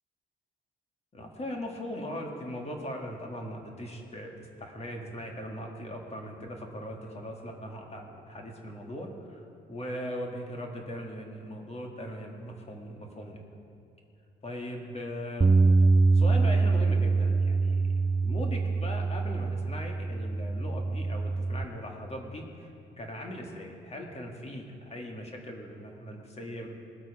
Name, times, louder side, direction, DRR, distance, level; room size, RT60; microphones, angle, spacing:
voice 1, 1.1-4.3 4.6-13.5 14.4-15.6 16.1-17.9 18.2-22.7 23.0-26.7, equal, 30° left, 1 dB, 2.0 m, -39 dB
Bass guitar, 15.4-21.7, right 3 dB, 15° right, 0.4 m, -24 dB
20.0 x 8.3 x 4.9 m, 2.8 s
cardioid pair, 90°, 20 cm